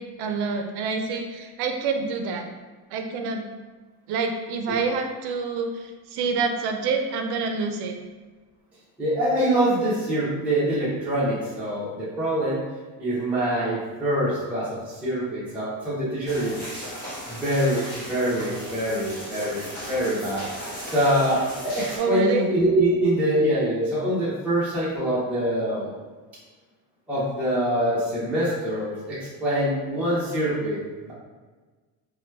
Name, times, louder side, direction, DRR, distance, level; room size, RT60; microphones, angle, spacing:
voice 1, 0.0-2.4 2.9-3.4 4.1-8.0 22.0-22.5, right 4 dB, 70° right, 5 dB, 0.5 m, -27 dB
voice 2, 9.0-12.6 13.0-16.6 17.2-20.4 20.8-25.9 27.1-30.8 31.1-31.2, right 1 dB, 5° right, -10 dB, 0.8 m, -24 dB
sound 1, 16.3-22.0, equal, 25° left, 1.4 m, -36 dB
3.0 x 2.2 x 3.2 m, 1.4 s
cardioid pair, 135°, 41 cm